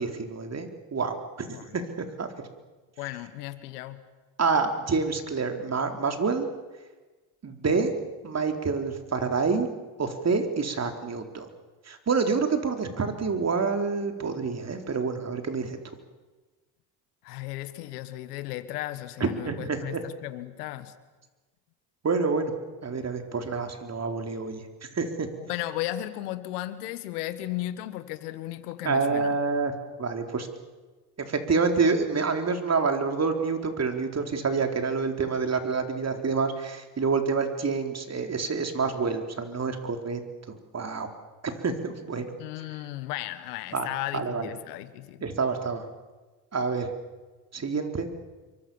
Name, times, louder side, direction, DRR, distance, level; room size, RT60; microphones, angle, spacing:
voice 1, 0.0-1.5 1.7-1.8 2.2-2.3 4.4-6.5 7.4-7.9 8.2-9.7 10.0-11.5 11.9-15.8 19.2-19.8 22.0-22.5 22.8-24.6 24.9-25.3 28.8-29.7 30.0-30.5 31.3-40.2 40.7-41.1 41.4-42.3 43.7-43.9 44.1-44.5 45.2-45.8 46.5-46.9 47.5-48.1, right 4 dB, 35° right, 6 dB, 4.2 m, -27 dB
voice 2, 1.5-1.8 3.0-4.0 17.2-20.9 25.4-29.4 42.4-45.2, left 15 dB, 85° left, 12 dB, 1.6 m, -35 dB
28.0 x 24.0 x 7.3 m, 1.2 s
supercardioid pair, 75°, 45 cm